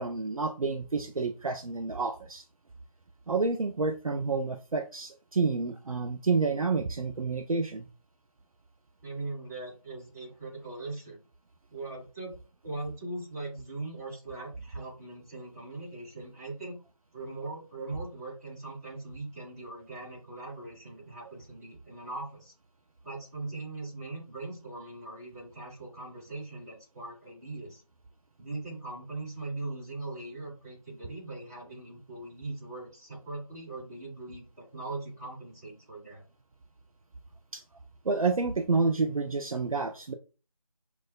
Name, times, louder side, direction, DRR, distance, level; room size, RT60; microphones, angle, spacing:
voice 1, 0.0-2.4 3.3-7.9 37.5-37.6 38.0-40.1, right 4 dB, 70° right, 7 dB, 0.4 m, -29 dB
voice 2, 9.0-11.2 11.7-12.3 12.6-16.8 17.1-22.5 23.0-27.8 28.4-36.2, right 2 dB, 30° right, -7 dB, 1.9 m, -40 dB
5.8 x 2.2 x 2.2 m, 0.33 s
figure-of-eight pair, 165°, 19 cm